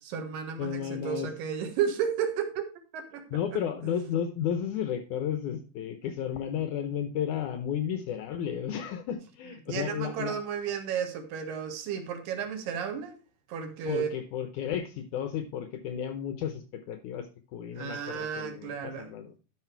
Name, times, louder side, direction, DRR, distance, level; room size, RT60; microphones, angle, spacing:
voice 1, 0.0-3.4 9.7-13.2 13.5-14.1 17.8-19.1, right 7 dB, 65° right, 2.9 m, -33 dB
voice 2, 0.6-1.3 3.3-10.4 13.9-19.3, left 9 dB, 80° left, 1.8 m, -33 dB
12.0 x 5.7 x 4.5 m
omnidirectional pair, 4.6 m